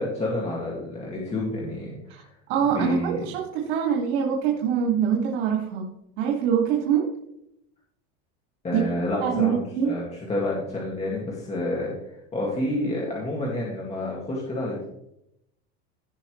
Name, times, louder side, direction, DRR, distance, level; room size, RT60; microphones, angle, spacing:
voice 1, 0.0-2.3 2.6-3.3 8.6-10.0 10.3-14.8, left 1 dB, 20° left, -4 dB, 2.1 m, -29 dB
voice 2, 2.5-5.9 6.2-7.1 8.7-8.8 9.2-10.0, right 8 dB, 85° right, 0 dB, 2.3 m, -24 dB
16.5 x 5.7 x 3.2 m, 0.80 s
cardioid pair, 150°, 33 cm